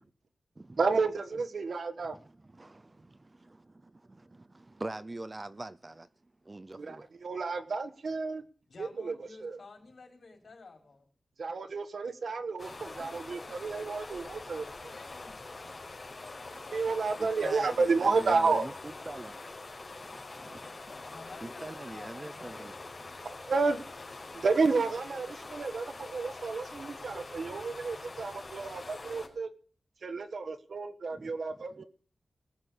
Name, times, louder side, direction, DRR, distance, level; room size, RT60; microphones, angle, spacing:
voice 1, 0.8-2.2 6.8-8.4 8.8-9.1 9.4-9.6 11.4-14.9 16.7-18.6 23.2-23.8 24.3-29.5 30.0-31.8, right 4 dB, 65° right, 1.5 m, -31 dB
voice 2, 2.0-3.5 4.5-6.1 6.4-7.1 17.2-19.4 19.9-20.9 21.4-22.7 31.1-31.3 31.7-31.8, right 2 dB, 25° right, 0.7 m, -43 dB
voice 3, 8.7-11.1 14.8-15.6 16.2-16.3 16.7-16.8 20.8-22.9, left 4 dB, 60° left, 5.4 m, -52 dB
sound 1, 12.6-29.3, left 3 dB, 35° left, 5.1 m, -44 dB
19.0 x 7.3 x 8.2 m
wide cardioid pair, 115°, 0 cm